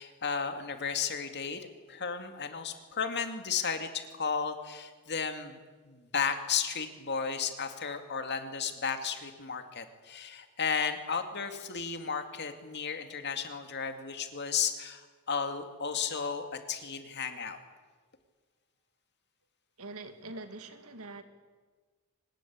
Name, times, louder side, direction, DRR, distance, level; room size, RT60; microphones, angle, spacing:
voice 1, 0.0-5.6 5.9-15.0 15.3-17.6, left 6 dB, 50° left, 7 dB, 2.4 m, -34 dB
voice 2, 19.8-21.2, right 2 dB, 70° right, 8 dB, 2.4 m, -44 dB
24.5 x 20.5 x 8.8 m, 1.4 s
head